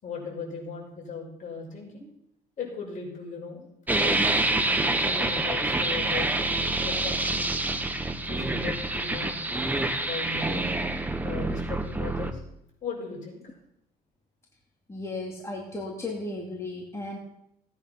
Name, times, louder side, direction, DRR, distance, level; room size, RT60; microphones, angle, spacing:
voice 1, 0.0-2.0 2.6-3.6 3.9-4.4 4.6-6.3 6.8-7.6 8.2-9.5 10.0-10.7 11.2-12.4 12.8-13.4, left 4 dB, 50° left, 0 dB, 6.0 m, -37 dB
sound 1, 3.9-12.3, right 2 dB, 10° right, 1.3 m, -27 dB
voice 2, 14.9-17.2, left 2 dB, 15° left, -1 dB, 2.5 m, -35 dB
17.0 x 9.2 x 5.9 m, 0.79 s
cardioid pair, 110°, 17 cm